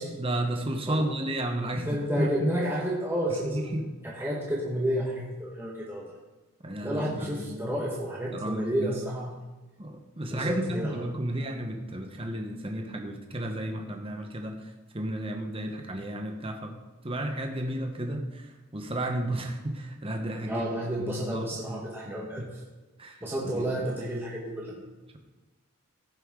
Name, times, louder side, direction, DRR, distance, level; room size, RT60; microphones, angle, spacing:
voice 1, 0.1-1.9 2.2-2.5 3.5-3.9 6.6-7.7 8.3-9.0 9.8-14.5 14.9-16.8 17.0-18.4 18.7-20.7 21.0-22.5 23.0-23.9, right 1 dB, 25° right, 4 dB, 1.0 m, -33 dB
voice 2, 1.8-3.7 4.0-6.0 6.8-9.4 10.3-11.0 20.5-22.4 23.2-24.7, equal, 10° right, -5 dB, 1.6 m, -31 dB
16.0 x 6.8 x 3.8 m, 1.2 s
head